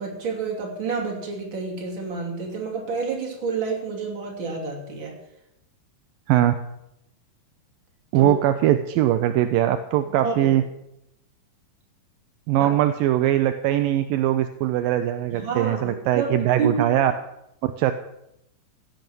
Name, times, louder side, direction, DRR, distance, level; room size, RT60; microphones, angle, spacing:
voice 1, 0.0-5.1 8.1-8.3 10.2-10.6 12.6-12.7 15.3-16.3 16.6-16.8, right 4 dB, 35° right, 0 dB, 3.3 m, -29 dB
voice 2, 8.1-10.6 12.5-17.1 17.6-17.9, right 12 dB, 80° right, 9 dB, 2.3 m, -21 dB
16.0 x 9.2 x 6.2 m, 0.83 s
omnidirectional pair, 4.1 m